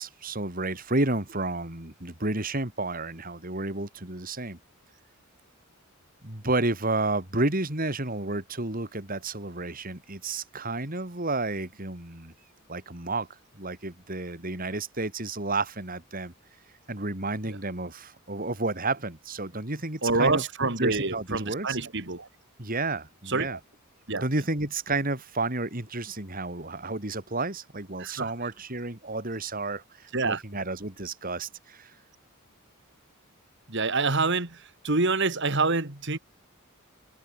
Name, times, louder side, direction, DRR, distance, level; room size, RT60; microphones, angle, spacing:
voice 1, 0.0-4.6 6.2-12.3 12.7-13.3 13.5-16.3 16.9-20.4 20.8-21.8 22.6-23.6 24.2-31.9, right 2 dB, 40° right, 3.7 m, -31 dB
voice 2, 20.0-22.3 23.3-23.6 24.1-24.3 28.0-28.3 30.1-30.4 33.7-36.2, right 3 dB, 55° right, 2.8 m, -26 dB
head